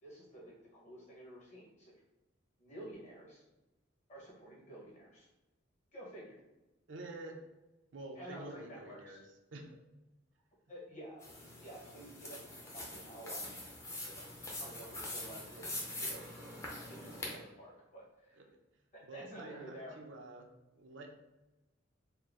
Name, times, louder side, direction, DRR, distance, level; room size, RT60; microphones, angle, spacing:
voice 1, 0.0-1.9 2.6-3.4 4.1-5.3 5.9-6.4 8.1-9.2 10.7-11.3 11.6-13.5 14.1-14.3 14.6-18.4 18.9-20.0, right 1 dB, 40° left, -4 dB, 1.3 m, -51 dB
voice 2, 6.9-7.4 7.9-9.2 9.5-9.8 18.3-18.5 19.0-20.5 20.7-21.1, right 2 dB, 70° right, 2 dB, 0.6 m, -48 dB
sound 1, 11.2-17.3, left 1 dB, 15° left, 0.7 m, -44 dB
4.3 x 2.1 x 3.7 m, 1.0 s
head